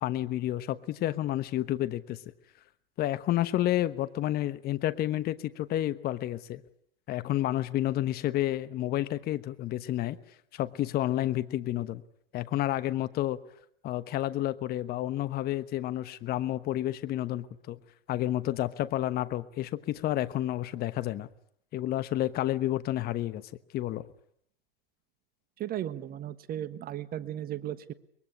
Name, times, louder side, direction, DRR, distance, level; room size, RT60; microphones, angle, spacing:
voice 1, 0.0-2.2 3.0-6.6 7.1-10.2 10.5-12.0 12.3-13.4 13.8-17.8 18.1-21.3 21.7-24.1, left 14 dB, 30° left, 14 dB, 1.1 m, -30 dB
voice 2, 25.6-27.9, right 11 dB, 30° right, 15 dB, 1.3 m, -36 dB
24.0 x 22.0 x 9.9 m, 0.69 s
hypercardioid pair, 105°, 29 cm